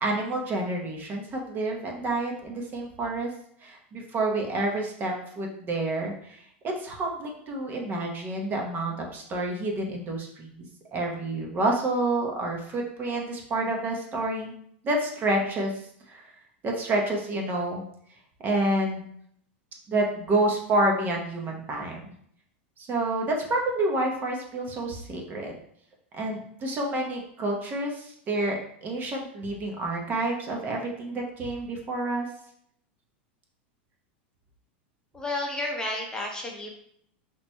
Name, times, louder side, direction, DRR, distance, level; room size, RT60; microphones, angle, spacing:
voice 1, 0.0-3.3 3.6-14.5 14.8-15.7 16.1-16.2 16.6-17.8 18.4-19.0 19.9-22.0 22.8-25.5 26.1-32.3, right 2 dB, 30° right, 0 dB, 0.9 m, -29 dB
voice 2, 35.1-36.7, left 2 dB, 10° left, 0 dB, 0.8 m, -31 dB
5.8 x 3.0 x 2.2 m, 0.68 s
hypercardioid pair, 115°, 6 cm